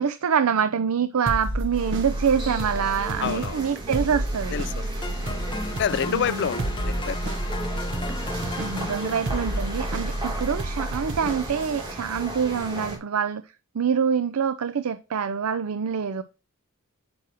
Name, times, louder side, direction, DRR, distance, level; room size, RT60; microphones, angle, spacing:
voice 1, 0.0-4.5 6.1-6.5 8.6-13.4 13.7-16.2, right 7 dB, 85° right, 0.5 m, -25 dB
sound 1, 1.3-11.9, right 1 dB, 60° right, 1.0 m, -31 dB
sound 2, 1.7-13.0, right 1 dB, 25° right, 3.0 m, -37 dB
voice 2, 3.2-3.7 4.5-4.8 5.2-5.4 5.8-7.4, left 8 dB, 55° left, 0.4 m, -28 dB
sound 3, 5.0-11.1, left 2 dB, 20° left, 1.1 m, -36 dB
8.7 x 6.1 x 2.9 m
head